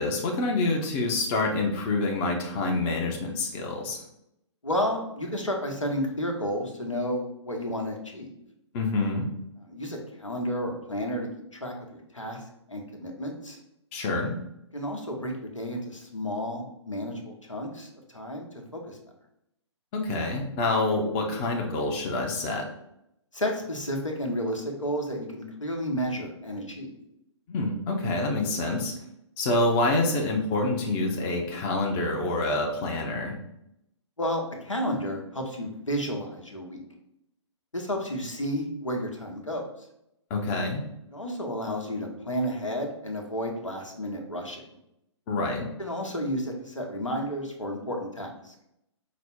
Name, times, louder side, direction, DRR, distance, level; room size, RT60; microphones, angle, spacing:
voice 1, 0.0-4.0 8.7-9.3 13.9-14.4 19.9-22.7 27.5-28.9 29.4-33.4 40.3-40.8 45.3-45.7, left 2 dB, 25° left, 1 dB, 0.6 m, -27 dB
voice 2, 4.6-8.3 9.6-12.4 12.7-13.6 14.7-18.5 18.7-19.0 23.3-26.9 34.2-36.8 37.7-39.6 41.1-44.6 45.8-48.5, equal, 85° left, 2 dB, 1.0 m, -32 dB
5.1 x 2.0 x 4.3 m, 0.80 s
figure-of-eight pair, 130°, 16 cm